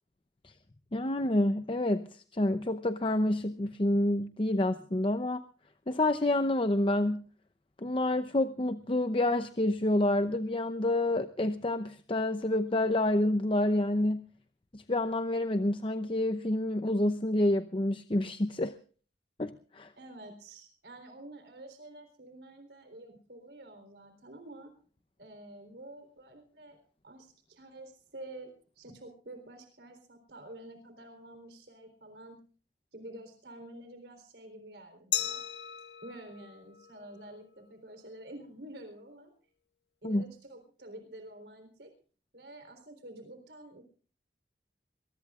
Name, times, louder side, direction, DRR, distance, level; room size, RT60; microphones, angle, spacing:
voice 1, 0.9-5.4 5.9-7.2 7.8-14.2 14.7-18.7 19.4-19.9 40.0-40.2, left 1 dB, 30° left, 0.7 m, -28 dB
voice 2, 20.0-24.7 25.2-26.8 27.0-32.4 32.9-35.5 36.0-39.3 40.0-41.9 42.3-43.8, right 1 dB, 70° right, 3.9 m, -49 dB
Glass, 35.1-37.8, left 12 dB, 70° left, 0.6 m, -37 dB
22.0 x 22.0 x 2.5 m
head